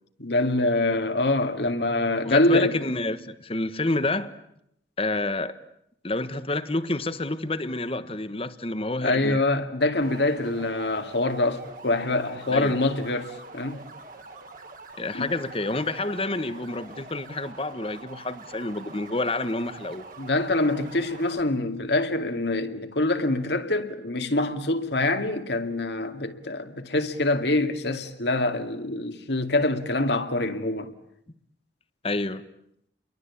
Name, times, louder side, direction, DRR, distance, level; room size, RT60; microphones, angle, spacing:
voice 1, 0.2-2.8 9.0-13.8 15.1-15.3 20.2-30.9, left 2 dB, 65° left, 2.3 m, -25 dB
voice 2, 2.2-4.3 5.0-5.6 6.0-9.4 12.5-12.8 15.0-20.1 32.0-32.4, left 2 dB, 30° left, 1.3 m, -28 dB
sound 1, 10.0-21.4, right 3 dB, 45° right, 3.0 m, -44 dB
29.5 x 23.0 x 8.5 m
head